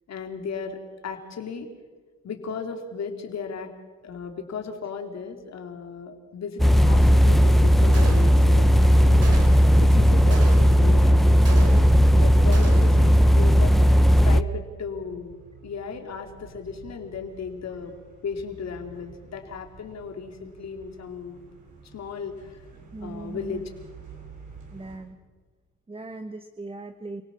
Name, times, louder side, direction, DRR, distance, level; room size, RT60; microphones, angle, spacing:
voice 1, 0.1-0.8 1.0-1.7 2.2-3.7 4.0-11.6 12.1-13.8 14.2-15.4 15.6-17.9 18.2-21.4 21.8-22.6 23.0-23.7, left 6 dB, 60° left, 4 dB, 3.4 m, -36 dB
sound 1, 6.6-14.4, equal, ahead, 0.6 m, -16 dB
Gunshot gunfire, 7.9-8.6 9.2-9.8 10.3-10.9 11.4-12.1 12.5-13.1, right 4 dB, 55° right, 3.9 m, -37 dB
sound 2, 10.4-25.0, right 5 dB, 75° right, 7.5 m, -50 dB
voice 2, 22.9-23.6 24.7-25.2 25.9-27.2, right 3 dB, 20° right, 8 dB, 1.3 m, -38 dB
29.5 x 17.5 x 7.2 m, 1.4 s
cardioid pair, 90°, 30 cm